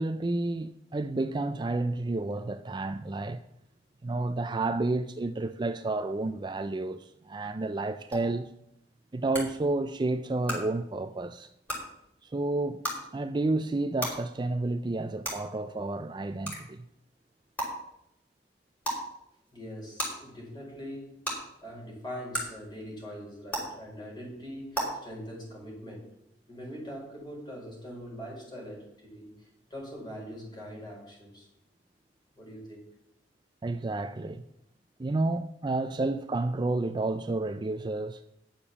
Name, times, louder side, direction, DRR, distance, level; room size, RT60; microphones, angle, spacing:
voice 1, 0.0-3.4 4.0-8.5 9.1-11.5 12.2-12.9 13.1-16.8 33.6-34.4 35.0-38.2, right 2 dB, 25° right, 0.4 m, -30 dB
sound 1, 8.1-8.2 9.3-9.4 10.4-10.5 11.6-11.8 12.8-12.9 14.0-14.1 15.2-15.3 16.4-16.6 17.6-17.7 18.8-19.0 20.0-20.1 21.2-21.3 22.3-22.4 23.5-23.6 24.7-24.8, right 1 dB, 10° left, 4.8 m, -31 dB
voice 2, 19.5-21.2 21.6-26.1 26.5-31.5 32.3-32.8, equal, 25° left, 4.8 m, -42 dB
10.5 x 7.0 x 7.1 m
head